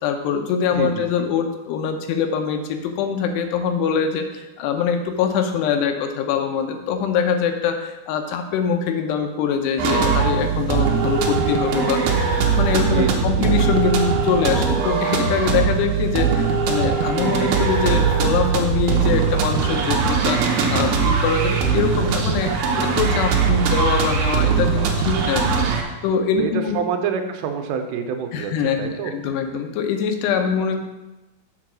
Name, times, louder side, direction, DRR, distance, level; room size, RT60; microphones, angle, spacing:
voice 1, 0.0-26.8 28.3-30.8, left 6 dB, 80° left, 6 dB, 2.8 m, -23 dB
voice 2, 0.8-1.1 12.9-13.5 26.4-29.1, right 7 dB, 90° right, 6 dB, 3.0 m, -27 dB
sound 1, 9.8-25.8, right 5 dB, 70° right, 2.4 m, -20 dB
7.1 x 4.7 x 6.1 m, 1.1 s
omnidirectional pair, 4.8 m